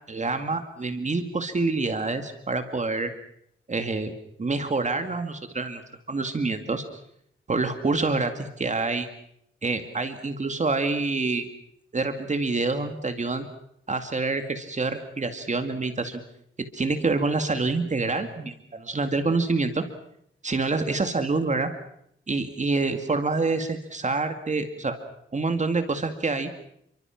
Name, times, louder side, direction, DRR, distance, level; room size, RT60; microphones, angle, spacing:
voice 1, 0.1-3.1 3.7-4.1 4.4-5.8 6.1-6.8 7.5-9.1 9.6-11.5 11.9-13.5 13.9-16.2 16.7-19.8 20.4-21.7 22.3-25.0 25.3-26.5, right 3 dB, 35° right, 7 dB, 2.2 m, -27 dB
29.5 x 24.0 x 6.0 m, 0.72 s
wide cardioid pair, 165°, 21 cm